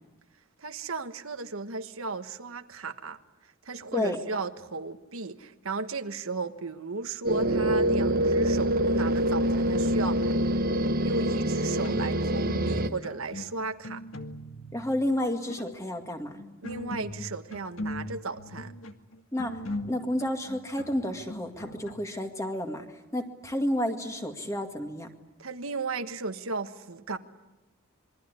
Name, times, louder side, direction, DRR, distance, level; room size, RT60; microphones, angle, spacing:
voice 1, 0.6-3.2 3.6-10.3 11.0-14.0 16.6-18.7 25.4-27.2, right 3 dB, 80° right, 8 dB, 1.4 m, -35 dB
sound 1, 7.2-12.9, right 1 dB, 45° right, 1.3 m, -25 dB
sound 2, 11.2-12.8 13.0-14.8 15.3-15.8 16.3-21.9, left 1 dB, 70° left, 1.8 m, -40 dB
voice 2, 14.7-16.3 19.3-19.5 19.9-22.8 23.1-25.1, left 1 dB, 15° left, 4 dB, 2.2 m, -30 dB
27.0 x 22.5 x 9.7 m, 1.1 s
head